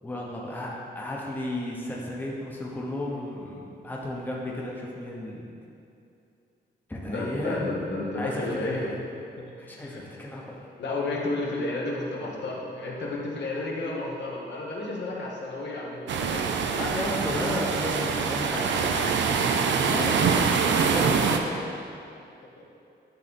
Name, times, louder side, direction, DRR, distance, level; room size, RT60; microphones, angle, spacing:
voice 1, 0.0-5.5 6.9-7.8 8.1-8.9 9.6-10.6 16.7-19.1 19.9-21.6, left 1 dB, 10° left, -3 dB, 0.8 m, -34 dB
voice 2, 7.0-8.9 9.4-9.5 9.8-10.0 10.8-16.5, left 2 dB, 75° left, -3 dB, 1.3 m, -32 dB
sound 1, 16.1-21.4, right 5 dB, 85° right, 0.5 m, -24 dB
10.5 x 4.0 x 4.2 m, 2.6 s
wide cardioid pair, 170°, 18 cm